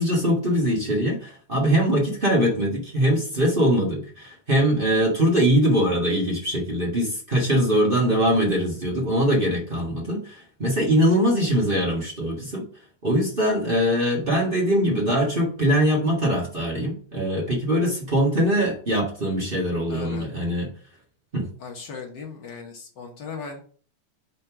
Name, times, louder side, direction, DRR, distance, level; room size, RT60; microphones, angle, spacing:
voice 1, 0.0-12.6 13.0-20.7 21.3-21.5, equal, 25° right, -3 dB, 1.2 m, -22 dB
voice 2, 19.9-20.3 21.6-23.6, left 5 dB, 50° left, 0 dB, 1.4 m, -37 dB
5.2 x 4.3 x 5.8 m, 0.43 s
omnidirectional pair, 3.5 m